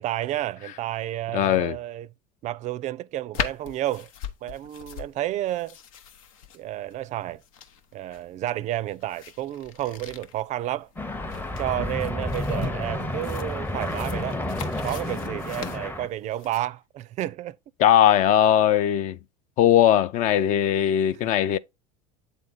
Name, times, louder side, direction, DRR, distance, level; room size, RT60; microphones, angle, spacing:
voice 1, 0.0-2.1 2.4-4.1 4.4-5.8 6.5-7.4 7.9-10.9 11.6-14.4 14.8-17.6, right 14 dB, 45° right, 0.4 m, -31 dB
voice 2, 1.3-1.8 17.8-19.2 19.6-21.6, left 10 dB, 50° left, 0.5 m, -19 dB
sound 1, 3.3-16.6, left 8 dB, 85° left, 0.8 m, -40 dB
sound 2, 11.0-16.1, left 1 dB, 10° left, 0.7 m, -30 dB
8.1 x 3.6 x 4.0 m
supercardioid pair, 100°, 17 cm